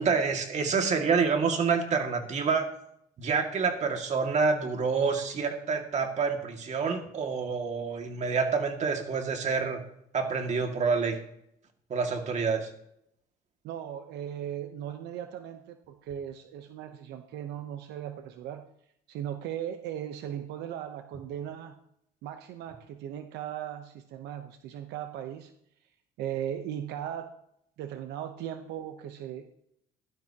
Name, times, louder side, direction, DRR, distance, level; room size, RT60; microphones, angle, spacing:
voice 1, 0.0-2.7 3.2-9.8 10.1-11.2 11.9-12.7, right 5 dB, 45° right, 4 dB, 2.2 m, -27 dB
voice 2, 13.6-18.7 19.1-21.8 22.2-25.5 26.2-27.3 27.8-29.5, right 10 dB, 85° right, 7 dB, 0.9 m, -38 dB
16.5 x 12.0 x 2.9 m, 0.73 s
cardioid pair, 110°, 17 cm